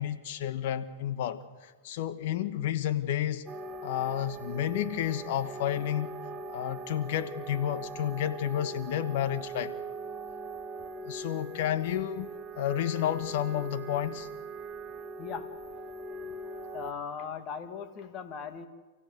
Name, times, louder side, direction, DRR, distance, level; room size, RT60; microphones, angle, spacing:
voice 1, 0.0-1.4 1.8-3.5 3.8-6.2 6.5-9.7 11.0-14.3, left 11 dB, 60° left, 1.3 m, -31 dB
sound 1, 3.5-16.9, right 4 dB, 25° right, 1.2 m, -41 dB
voice 2, 15.2-15.5 16.7-18.7, left 6 dB, 35° left, 2.1 m, -38 dB
29.5 x 15.5 x 8.1 m
hypercardioid pair, 110°, 0 cm